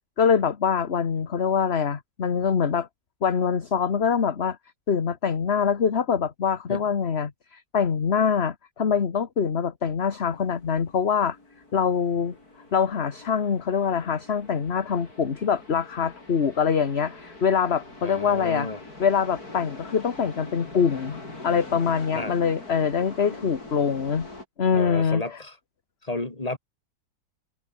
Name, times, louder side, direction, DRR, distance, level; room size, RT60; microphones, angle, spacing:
voice 1, 0.2-2.9 3.2-4.6 4.9-11.4 11.7-12.4 12.7-18.7 19.0-24.3 24.6-25.2, left 6 dB, 40° left, 1.5 m, -24 dB
sound 1, 10.3-24.5, left 2 dB, 55° left, 6.8 m, -44 dB
voice 2, 18.0-18.8 22.1-22.4 24.7-25.6 26.0-26.6, left 2 dB, 20° left, 3.1 m, -32 dB
omnidirectional pair, 1.9 m